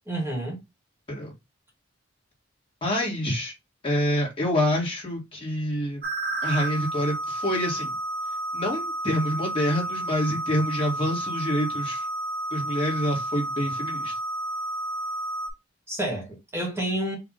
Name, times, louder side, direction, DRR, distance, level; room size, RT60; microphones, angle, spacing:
voice 1, 0.1-0.6 15.9-17.2, right 1 dB, 15° right, 1.6 m, -29 dB
voice 2, 2.8-3.5 3.8-6.0 6.4-7.9 8.5-12.1 12.5-14.1, equal, 30° left, 1.8 m, -27 dB
sound 1, 6.0-15.5, right 1 dB, 50° right, 0.9 m, -31 dB
4.8 x 2.7 x 3.8 m
head